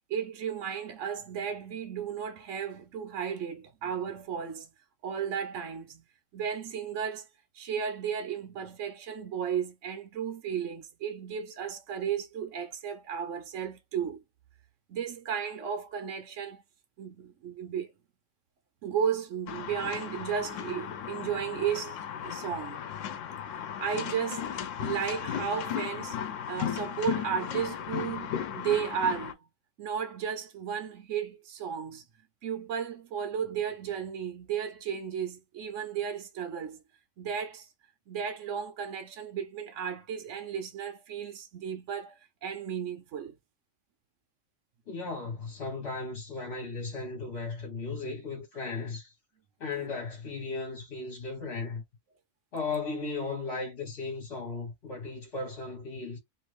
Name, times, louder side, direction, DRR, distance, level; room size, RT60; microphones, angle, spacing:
voice 1, 0.1-4.7 5.0-6.0 6.3-7.2 7.5-14.2 14.9-16.6 17.0-17.9 18.8-22.8 23.8-29.5 29.8-32.0 32.4-36.8 37.2-37.7 38.1-43.4, right 8 dB, 80° right, 1.1 m, -34 dB
sound 1, 19.5-29.3, left 9 dB, 85° left, 0.9 m, -36 dB
voice 2, 44.9-49.1 49.6-51.8 52.5-56.2, left 3 dB, 60° left, 1.3 m, -36 dB
2.9 x 2.5 x 3.1 m
omnidirectional pair, 1.3 m